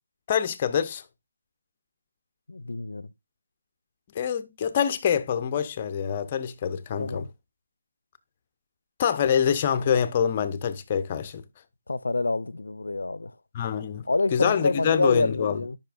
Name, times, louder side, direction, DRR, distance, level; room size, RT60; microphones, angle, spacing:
voice 1, 0.3-1.0 4.1-7.2 9.0-11.4 13.5-14.0 14.3-15.6, left 8 dB, 25° left, 0.5 m, -25 dB
voice 2, 2.5-3.1 7.0-7.3 11.9-13.4 14.1-15.8, left 3 dB, 85° left, 0.4 m, -27 dB
8.7 x 5.4 x 2.4 m
figure-of-eight pair, 170°, 0 cm